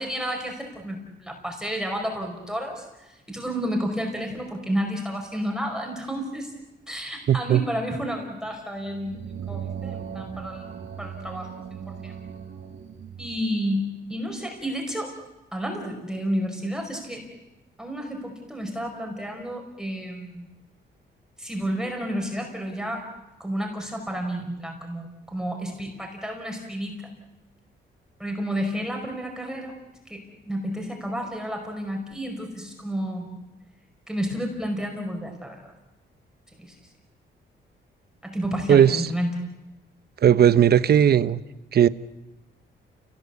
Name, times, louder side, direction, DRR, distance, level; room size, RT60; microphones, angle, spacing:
voice 1, 0.0-6.5 6.9-12.2 13.2-15.1 15.5-17.2 17.8-20.5 21.4-23.0 23.4-27.0 28.2-29.7 30.1-33.3 34.1-35.6 36.6-36.7 38.2-39.4, equal, 5° right, 1 dB, 5.1 m, -31 dB
voice 2, 7.3-7.6 38.7-39.1 40.2-41.4 41.7-41.9, right 9 dB, 55° right, 16 dB, 0.9 m, -17 dB
sound 1, 8.8-13.4, right 8 dB, 75° right, 5.4 m, -37 dB
29.0 x 19.0 x 8.3 m, 1.0 s
cardioid pair, 110°, 20 cm